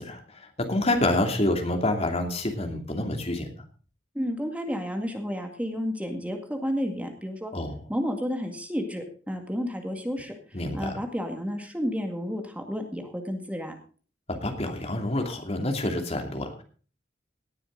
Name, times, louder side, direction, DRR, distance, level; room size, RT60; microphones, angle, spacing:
voice 1, 0.0-3.6 7.5-7.8 10.5-11.0 14.3-16.6, left 1 dB, 35° left, 4 dB, 2.7 m, -28 dB
voice 2, 4.1-7.5 7.9-10.3 10.7-13.8, equal, 10° right, 4 dB, 2.0 m, -31 dB
18.0 x 9.8 x 3.9 m, 0.40 s
head